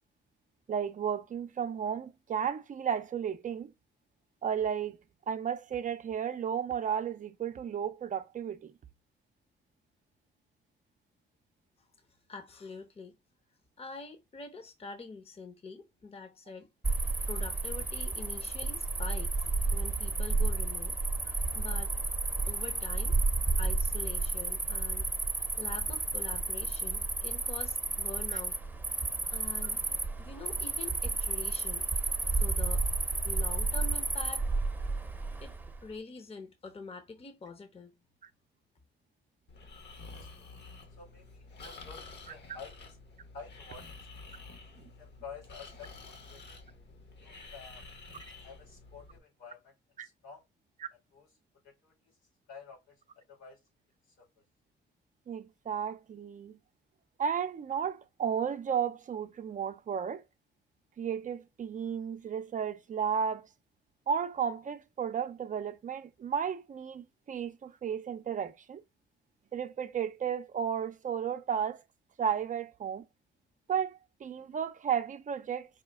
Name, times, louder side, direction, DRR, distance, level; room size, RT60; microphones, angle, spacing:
voice 1, 0.7-3.7 4.4-5.0 5.3-8.7 28.3-28.4 38.2-38.3 50.0-50.1 50.8-50.9 55.3-56.6 57.2-60.2 61.0-63.5 64.1-68.8 69.5-71.8 72.2-73.1 73.7-75.7, right 7 dB, 40° right, 0.5 m, -33 dB
voice 2, 12.3-13.1 13.8-16.7 17.2-21.9 22.5-23.2 23.6-25.1 25.6-28.5 29.3-29.8 30.2-31.8 32.3-32.9 33.2-34.5 35.4-35.5 35.8-37.9, left 4 dB, 30° left, 0.8 m, -45 dB
Cricket, 16.8-35.8, right 3 dB, 10° right, 0.7 m, -31 dB
Breathing, 39.5-49.2, left 3 dB, 60° left, 1.2 m, -50 dB
voice 3, 40.1-40.5 41.0-43.0 43.3-43.9 44.3-44.5 45.0-46.6 47.2-47.8 48.4-49.7 50.0-50.4 50.9-51.4 51.6-52.1 52.5-52.9 53.3-53.6 54.2-54.3, left 5 dB, 85° left, 2.9 m, -50 dB
4.9 x 2.2 x 3.4 m
cardioid pair, 90°, 20 cm